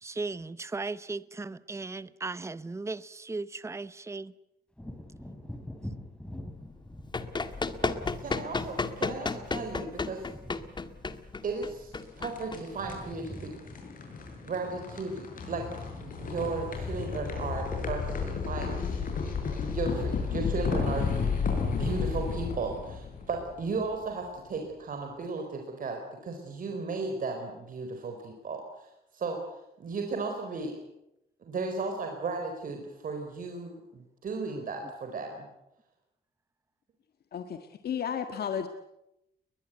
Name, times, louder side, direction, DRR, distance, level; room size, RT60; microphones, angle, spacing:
voice 1, 0.0-4.3, right 3 dB, 15° right, 0.8 m, -37 dB
Wind / Thunder, 4.7-12.3 12.6-19.8 20.2-20.4, left 1 dB, 5° left, 3.4 m, -47 dB
Run, 6.8-13.2, left 3 dB, 25° left, 1.7 m, -33 dB
voice 2, 8.2-10.2 11.4-11.9 12.2-13.5 14.4-15.7 16.0-19.4 19.7-21.1 21.8-29.4 29.8-30.8 31.4-35.5, right 3 dB, 55° right, 4.6 m, -35 dB
sound 1, 12.0-24.0, left 5 dB, 55° left, 7.0 m, -33 dB
voice 3, 37.3-38.7, left 8 dB, 70° left, 1.8 m, -33 dB
21.5 x 21.0 x 9.4 m
wide cardioid pair, 130°, 17 cm